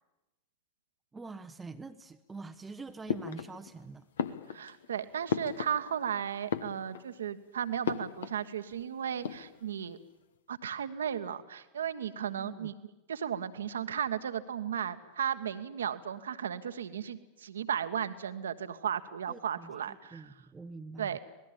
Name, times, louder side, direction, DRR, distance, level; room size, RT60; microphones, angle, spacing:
voice 1, 1.1-4.1 12.3-12.7 19.3-21.2, right 3 dB, 10° right, 8 dB, 0.9 m, -45 dB
sound 1, 3.1-3.8 4.2-6.1 6.4-7.2 7.8-8.5 8.7-8.8 9.1-9.8, left 7 dB, 65° left, 1.2 m, -36 dB
voice 2, 4.5-10.0 10.5-12.7 13.1-20.2 21.0-21.2, right 8 dB, 65° right, 12 dB, 1.3 m, -35 dB
26.5 x 19.5 x 8.7 m, 1.0 s
figure-of-eight pair, 90°, 0 cm